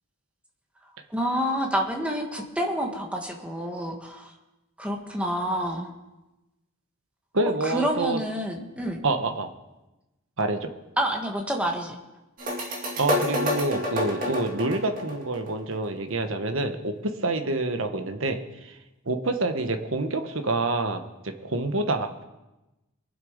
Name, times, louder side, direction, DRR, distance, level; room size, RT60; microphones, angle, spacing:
voice 1, 1.1-4.3 4.8-5.9 7.6-9.0 11.0-11.9, equal, 5° right, 1 dB, 1.5 m, -28 dB
voice 2, 7.3-8.2 9.0-9.5 10.4-10.7 13.0-18.8 19.0-22.2, right 2 dB, 65° right, 7 dB, 1.2 m, -27 dB
sound 1, 12.4-15.8, left 1 dB, 40° right, 2.3 m, -28 dB
23.0 x 7.7 x 5.1 m, 1.0 s
head